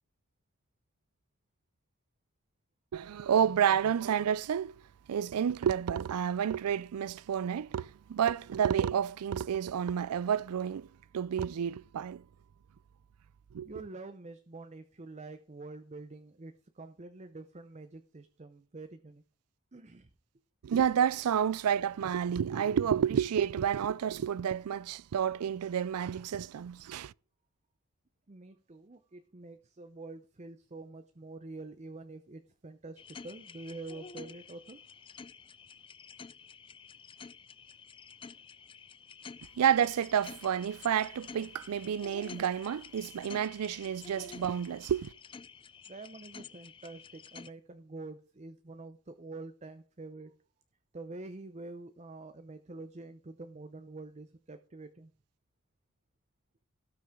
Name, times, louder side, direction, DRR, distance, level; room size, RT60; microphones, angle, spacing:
voice 1, 2.9-4.7 5.1-10.9 11.1-12.2 13.5-13.7 20.6-27.1 39.6-45.1, right 8 dB, 85° right, 0.4 m, -30 dB
voice 2, 13.6-19.2 19.7-20.1 28.3-34.8 45.9-50.3 50.9-55.1, right 3 dB, 30° right, 0.7 m, -46 dB
sound 1, 33.0-47.5, left 5 dB, 25° left, 0.4 m, -50 dB
17.0 x 6.1 x 3.7 m
head